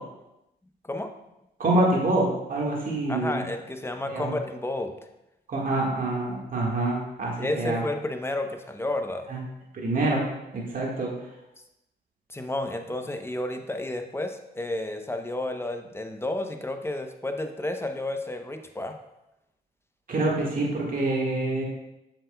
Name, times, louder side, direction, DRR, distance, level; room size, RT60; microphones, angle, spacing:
voice 1, 1.6-3.4 4.1-4.3 5.5-7.8 9.3-9.4 9.7-10.2 10.5-11.1 20.1-21.6, right 2 dB, 50° right, -2 dB, 1.7 m, -26 dB
voice 2, 3.1-4.9 7.4-9.3 12.3-19.0, left 1 dB, 15° left, 5 dB, 0.8 m, -31 dB
7.4 x 6.8 x 2.3 m, 0.91 s
supercardioid pair, 65°, 18 cm